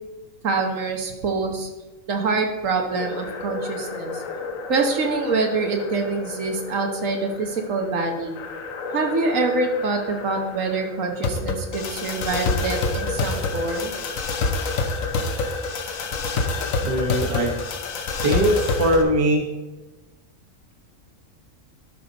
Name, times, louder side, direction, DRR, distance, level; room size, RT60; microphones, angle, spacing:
voice 1, 0.4-1.7 2.1-4.2 4.7-8.3 8.9-13.9, right 3 dB, 70° right, 2 dB, 1.4 m, -25 dB
sound 1, 3.0-19.0, left 3 dB, 75° left, 1.2 m, -28 dB
voice 2, 16.8-17.5 18.2-19.5, equal, 25° right, 1 dB, 1.1 m, -21 dB
12.0 x 5.2 x 4.0 m, 1.1 s
omnidirectional pair, 1.4 m